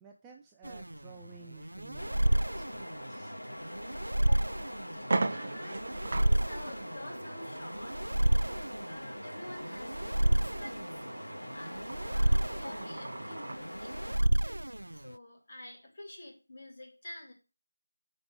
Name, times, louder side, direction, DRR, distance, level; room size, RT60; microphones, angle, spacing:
voice 1, 0.0-3.4, right 6 dB, 10° right, 1 dB, 0.5 m, -54 dB
sound 1, 0.6-15.1, right 1 dB, 70° right, 0.3 m, -31 dB
sound 2, 2.0-14.2, equal, 80° left, 2.5 m, -44 dB
sound 3, 4.0-4.1 4.6-4.7 5.0-13.7, right 3 dB, 40° right, 0.7 m, -40 dB
voice 2, 4.2-8.1 8.8-17.3, left 1 dB, 35° left, -1 dB, 3.0 m, -49 dB
6.8 x 5.3 x 6.8 m, 0.32 s
figure-of-eight pair, 165°, 0 cm